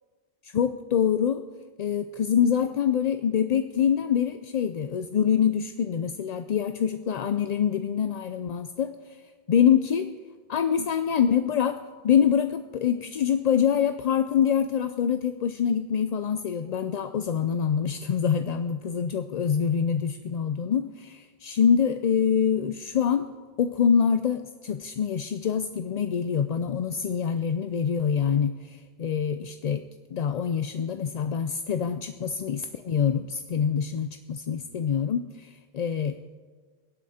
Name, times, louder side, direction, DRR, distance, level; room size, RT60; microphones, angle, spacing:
voice 1, 0.4-1.4 1.8-8.9 9.5-10.1 10.5-23.3 23.6-29.8 30.1-36.4, left 8 dB, 55° left, 9 dB, 0.5 m, -25 dB
23.0 x 8.4 x 4.2 m, 1.5 s
omnidirectional pair, 1.0 m